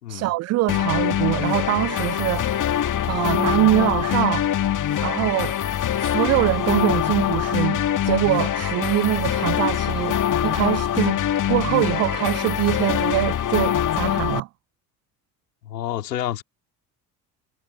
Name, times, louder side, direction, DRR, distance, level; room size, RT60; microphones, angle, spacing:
voice 1, 0.1-4.5 5.0-5.6 6.0-10.2 10.4-14.5, right 18 dB, 35° right, 0.5 m, -23 dB
sound 1, 0.7-14.4, left 10 dB, 40° left, 2.3 m, -23 dB
voice 2, 15.6-16.4, left 12 dB, 75° left, 3.8 m, -29 dB
figure-of-eight pair, 55°, 50 cm